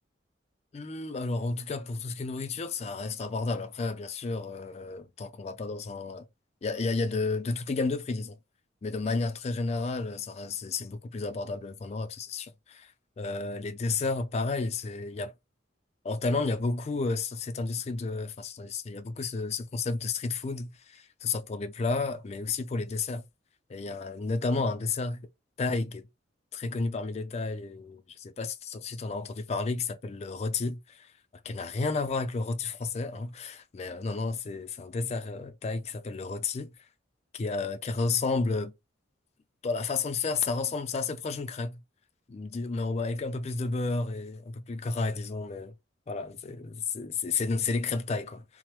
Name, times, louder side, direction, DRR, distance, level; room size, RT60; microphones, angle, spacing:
voice 1, 0.7-6.2 6.6-8.4 8.8-12.9 13.2-15.3 16.0-23.2 23.7-25.3 25.6-26.1 26.5-31.1 31.4-36.7 37.3-38.7 39.6-41.8 42.3-45.7 46.1-48.6, left 3 dB, 35° left, 0.3 m, -32 dB
2.8 x 2.0 x 3.0 m
head